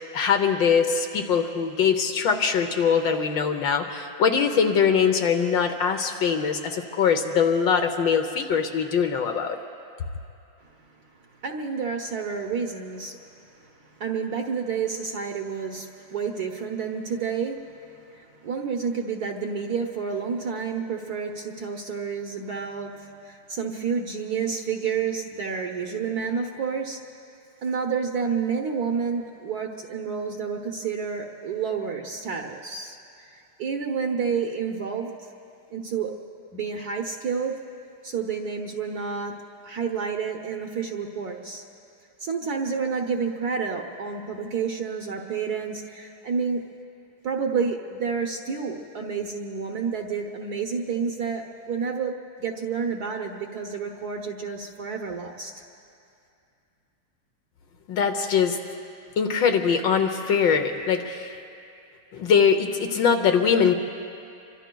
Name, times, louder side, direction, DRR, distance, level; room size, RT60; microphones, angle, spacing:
voice 1, 0.1-9.6 57.9-58.6 59.2-61.3 62.1-63.7, left 6 dB, 65° left, 5 dB, 1.4 m, -22 dB
voice 2, 11.4-13.2 13.6-27.0 27.6-35.1 35.7-36.1 36.5-37.6 38.0-39.4 39.6-41.6 42.2-46.6 47.2-55.6, right 6 dB, 55° right, 2 dB, 1.2 m, -29 dB
26.5 x 24.0 x 2.3 m, 2.5 s
omnidirectional pair, 2.4 m